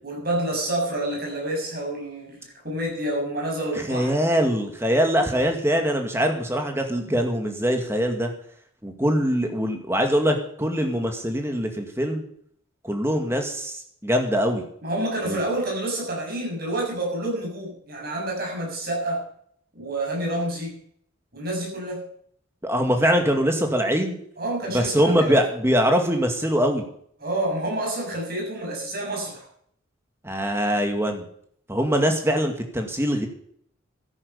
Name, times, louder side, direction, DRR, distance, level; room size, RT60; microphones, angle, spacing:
voice 1, 0.0-4.2 14.8-19.2 19.7-20.8 21.3-22.0 24.4-25.4 27.2-29.5, right 1 dB, 45° right, -1 dB, 7.3 m, -28 dB
voice 2, 3.7-8.3 8.8-12.3 12.8-14.6 15.2-15.4 22.6-24.2 24.7-26.9 30.2-31.2 31.7-33.3, equal, 10° right, 4 dB, 2.1 m, -23 dB
13.5 x 10.5 x 6.8 m, 0.65 s
head